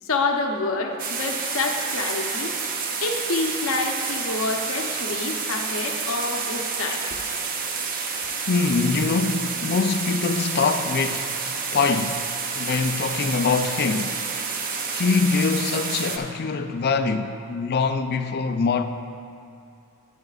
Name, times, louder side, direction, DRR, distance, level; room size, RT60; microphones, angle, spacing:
voice 1, 0.0-2.6 3.0-7.0, left 3 dB, 65° left, 0.8 m, -27 dB
sound 1, 1.0-16.2, right 5 dB, 40° right, 0.7 m, -29 dB
voice 2, 8.5-11.4 11.7-12.3 12.6-14.2 14.9-18.8, left 4 dB, 45° left, 0.4 m, -23 dB
12.5 x 9.3 x 2.4 m
head